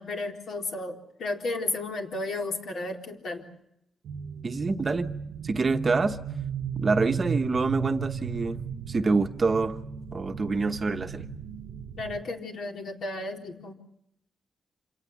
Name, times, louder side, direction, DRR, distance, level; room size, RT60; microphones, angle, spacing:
voice 1, 0.0-3.4 12.0-13.7, left 2 dB, 60° left, 4.0 m, -33 dB
sound 1, 4.0-12.2, right 6 dB, 80° right, 1.1 m, -35 dB
voice 2, 4.4-5.1 5.4-6.2 6.7-8.6 8.9-9.8 10.1-11.2, right 3 dB, 30° right, 1.1 m, -26 dB
27.5 x 18.0 x 8.5 m
wide cardioid pair, 170°, 0 cm